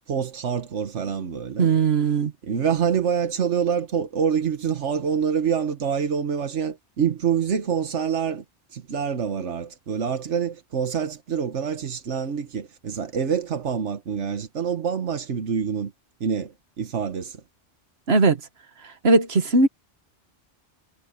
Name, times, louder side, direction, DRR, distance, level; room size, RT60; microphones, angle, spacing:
voice 1, 0.1-1.7 2.4-8.4 8.7-15.9 16.2-17.4, right 7 dB, 90° right, 1.5 m, -26 dB
voice 2, 1.6-2.3 18.1-18.4 19.0-19.7, right 3 dB, 65° right, 1.8 m, -18 dB
omnidirectional pair, 1.2 m